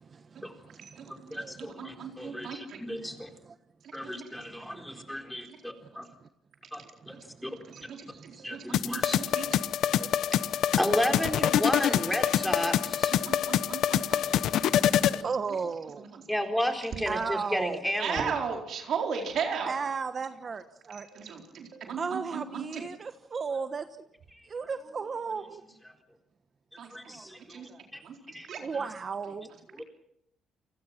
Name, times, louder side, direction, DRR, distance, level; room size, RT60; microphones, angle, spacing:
voice 1, 0.0-1.6 1.9-2.6 3.4-3.5 4.3-4.5 4.9-5.1 5.8-5.9 6.2-6.3 6.8-8.8 9.3-10.1 10.6-10.7 14.3-16.0 17.0-17.8 19.6-21.1 22.0-24.1 24.4-25.6 26.9-27.4 27.7-27.9 28.3-29.8, right 5 dB, 40° right, 9 dB, 1.2 m, -37 dB
voice 2, 0.8-2.8 4.0-4.1 7.7-9.6 12.8-14.3 14.6-14.9 16.0-16.2 18.0-19.7 21.1-22.8 26.8-27.2 27.5-27.7 28.0-28.6 29.8-29.9, right 6 dB, 70° right, 2 dB, 4.2 m, -37 dB
voice 3, 1.3-3.3 3.9-6.1 6.7-6.8 7.1-7.2 7.4-7.5 8.4-9.2 10.8-13.2 16.3-18.3 26.9-28.0 28.3-28.5 29.8-29.9, equal, 5° left, 4 dB, 4.1 m, -33 dB
sound 1, 8.7-15.2, left 10 dB, 80° left, 0.9 m, -26 dB
29.5 x 21.0 x 6.0 m, 0.77 s
cardioid pair, 90°, 0 cm